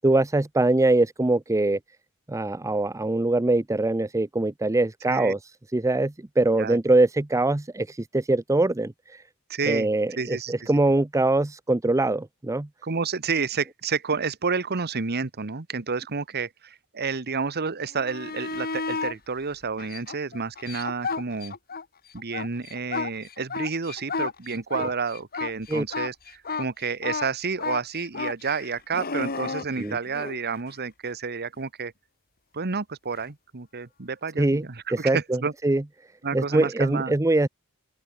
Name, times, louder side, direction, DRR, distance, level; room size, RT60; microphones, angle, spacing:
voice 1, 0.0-1.8 2.3-5.4 5.7-8.9 9.7-12.7 25.7-25.8 29.8-30.0 34.4-35.8 36.3-37.5, right 2 dB, 15° right, 0.6 m, -23 dB
voice 2, 9.5-9.9 10.2-10.7 12.8-21.5 22.1-31.9 32.5-35.5 36.2-37.1, right 5 dB, 45° right, 1.2 m, -30 dB
sound 1, 17.9-19.2 19.8-21.8 22.2-30.4 33.1-33.2, left 4 dB, 45° left, 3.6 m, -32 dB
open air
head